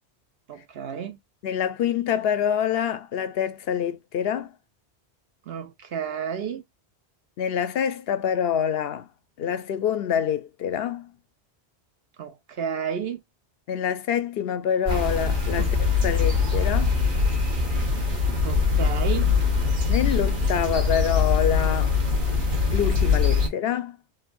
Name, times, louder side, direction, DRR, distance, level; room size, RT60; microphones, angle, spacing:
voice 1, 0.5-1.2 5.5-6.6 12.2-13.2 15.6-15.7 18.4-19.3, right 7 dB, 65° right, 1.0 m, -31 dB
voice 2, 1.4-4.5 7.4-9.1 9.4-11.1 13.7-15.8 16.0-17.0 19.9-21.9 22.7-24.0, left 8 dB, 65° left, 0.7 m, -26 dB
sound 1, 14.9-23.5, left 5 dB, 50° right, 1.4 m, -22 dB
4.0 x 2.5 x 2.4 m
omnidirectional pair, 1.1 m